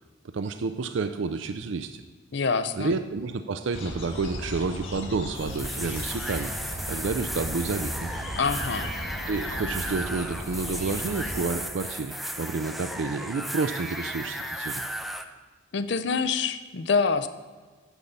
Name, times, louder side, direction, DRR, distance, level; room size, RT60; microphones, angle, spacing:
voice 1, 0.3-2.0 2.8-6.5 6.9-8.1 9.3-14.8, right 4 dB, 70° right, 9 dB, 0.5 m, -30 dB
voice 2, 2.3-3.0 8.4-8.9 15.7-17.3, left 5 dB, 60° left, 11 dB, 0.6 m, -26 dB
sound 1, 3.7-11.4, left 1 dB, 80° left, 1.7 m, -36 dB
sound 2, 5.4-15.2, equal, ahead, 0.5 m, -35 dB
10.5 x 7.2 x 5.4 m, 1.4 s
head